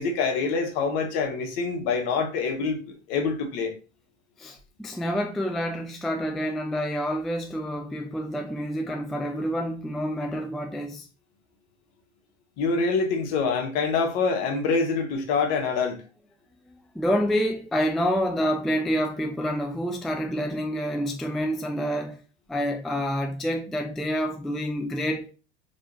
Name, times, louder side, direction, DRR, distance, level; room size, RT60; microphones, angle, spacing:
voice 1, 0.0-3.7 12.6-16.0, left 4 dB, 50° left, 1.3 m, -25 dB
voice 2, 4.4-11.1 16.9-22.2 22.5-25.3, equal, ahead, 0.3 m, -28 dB
5.0 x 3.2 x 2.9 m
figure-of-eight pair, 75°, 31 cm